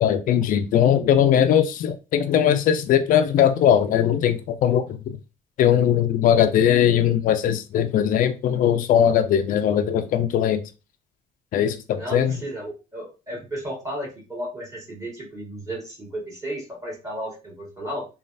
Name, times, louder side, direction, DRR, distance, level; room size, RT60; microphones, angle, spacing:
voice 1, 0.0-5.0 5.6-10.6 11.5-12.4, left 9 dB, 55° left, 9 dB, 0.4 m, -20 dB
voice 2, 11.9-18.1, right 1 dB, 20° right, -3 dB, 1.7 m, -33 dB
3.1 x 2.4 x 2.6 m, 0.31 s
cardioid pair, 110°, 17 cm